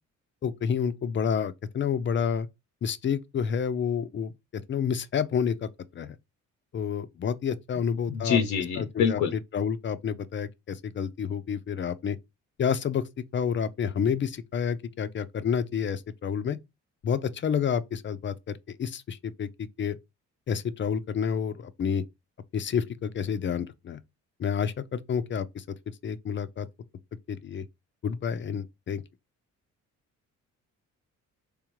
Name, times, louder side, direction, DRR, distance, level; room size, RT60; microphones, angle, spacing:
voice 1, 0.4-2.5 2.8-6.2 6.7-8.4 8.8-12.2 12.6-16.6 17.0-20.0 20.5-22.0 22.5-24.0 24.4-25.6 26.0-26.7 27.3-27.6 28.0-29.0, left 7 dB, 40° left, 0.5 m, -29 dB
voice 2, 8.1-9.3, left 7 dB, 80° left, 0.7 m, -25 dB
3.6 x 3.4 x 3.1 m
cardioid pair, 90°, 30 cm